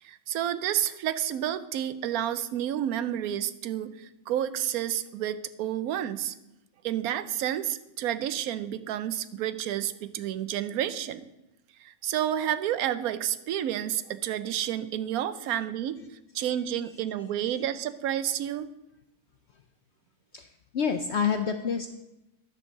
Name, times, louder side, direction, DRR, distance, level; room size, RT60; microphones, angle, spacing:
voice 1, 0.0-6.3 6.8-11.2 11.8-16.0 16.3-18.7, right 11 dB, 75° right, 13 dB, 1.1 m, -30 dB
voice 2, 20.7-21.9, left 6 dB, 65° left, 7 dB, 0.7 m, -27 dB
11.0 x 4.5 x 7.3 m, 0.94 s
omnidirectional pair, 1.6 m